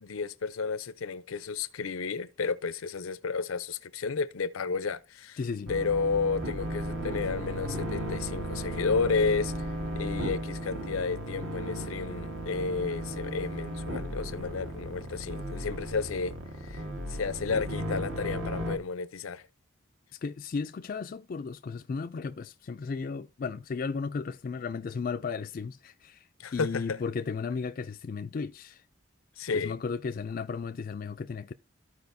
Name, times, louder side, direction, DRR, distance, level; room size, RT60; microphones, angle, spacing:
voice 1, 0.0-5.4 5.7-9.5 9.9-16.3 16.6-16.8 17.1-19.4 26.4-27.0 29.4-29.7, left 4 dB, 85° left, 0.6 m, -32 dB
voice 2, 5.4-5.7 20.2-26.2 26.5-28.8 29.5-31.5, left 5 dB, 45° left, 0.3 m, -35 dB
sound 1, 5.7-18.8, equal, 70° right, 1.4 m, -35 dB
Marimba xylophone, 11.3-16.4, equal, 85° right, 3.4 m, -54 dB
14.0 x 4.8 x 2.6 m
head